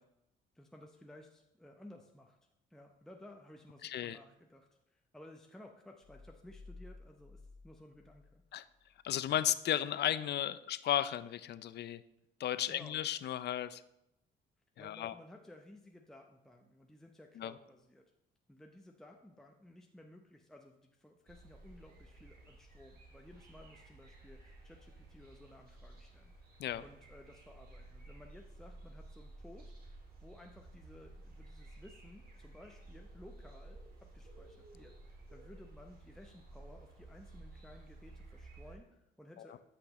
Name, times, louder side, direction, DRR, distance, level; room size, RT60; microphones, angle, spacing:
voice 1, 0.5-2.4 2.7-8.6 12.7-13.1 14.8-18.0 18.5-26.3 26.8-29.9 30.2-39.6, left 1 dB, ahead, 2 dB, 0.6 m, -56 dB
voice 2, 3.8-4.2 8.5-8.6 9.0-12.0 12.4-13.8 14.8-15.1 17.4-17.5 26.6-26.8 39.4-39.5, left 11 dB, 60° left, 15 dB, 0.5 m, -34 dB
sound 1, 6.0-9.0, left 3 dB, 45° left, 1.2 m, -55 dB
sound 2, 21.3-38.8, right 2 dB, 50° right, 2.4 m, -54 dB
13.0 x 5.9 x 3.0 m, 0.86 s
cardioid pair, 90°, 20 cm